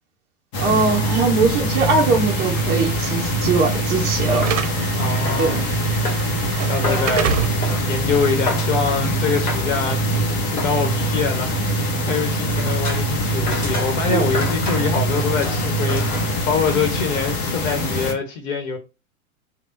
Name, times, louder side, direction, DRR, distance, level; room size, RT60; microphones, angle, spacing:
sound 1, 0.5-18.1, right 1 dB, 25° left, 0.8 m, -23 dB
voice 1, 0.6-4.5 5.4-5.6 14.1-14.2, right 4 dB, 20° right, 0.6 m, -20 dB
Slam / Alarm, 1.7-9.8, right 7 dB, 55° right, 0.7 m, -30 dB
sound 2, 2.5-17.3, left 4 dB, 90° left, 1.2 m, -33 dB
voice 2, 4.9-5.6 6.3-7.3 7.9-18.8, left 5 dB, 60° left, 1.2 m, -25 dB
3.3 x 2.3 x 3.9 m
hypercardioid pair, 110°, 44 cm